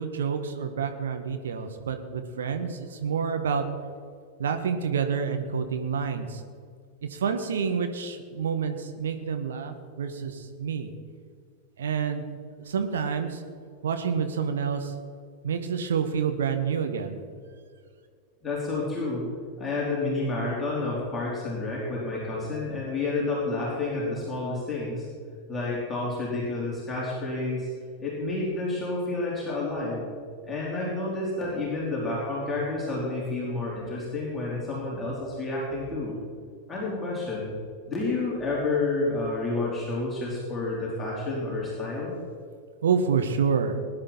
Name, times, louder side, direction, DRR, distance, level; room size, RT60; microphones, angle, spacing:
voice 1, 0.0-3.7 4.4-6.4 7.0-10.9 11.8-12.3 12.6-13.4 13.8-14.9 15.4-17.2 42.8-43.8, right 6 dB, 65° right, 6 dB, 1.3 m, -28 dB
voice 2, 18.4-19.3 19.6-25.1 25.5-27.7 28.0-30.1 30.4-36.2 36.7-37.5 37.9-42.1, left 2 dB, 15° left, -6 dB, 3.7 m, -30 dB
20.0 x 10.5 x 4.4 m, 2.1 s
figure-of-eight pair, 90°, 0 cm